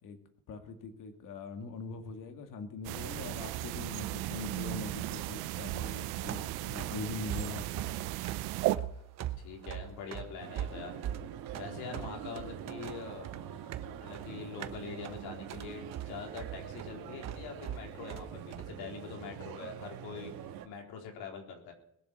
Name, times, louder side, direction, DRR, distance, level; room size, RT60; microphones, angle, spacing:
voice 1, 0.5-7.9, left 4 dB, 55° left, 6 dB, 2.2 m, -42 dB
sound 1, 2.8-8.8, right 17 dB, 90° right, 0.7 m, -36 dB
sound 2, 5.7-18.7, right 10 dB, 45° right, 1.0 m, -42 dB
voice 2, 9.4-11.0 11.5-13.4 13.9-20.3 20.6-21.7, left 6 dB, 85° left, 1 dB, 4.1 m, -44 dB
sound 3, 10.4-20.7, right 10 dB, 70° right, 1.9 m, -45 dB
21.0 x 7.4 x 6.3 m, 0.75 s
cardioid pair, 145°, 37 cm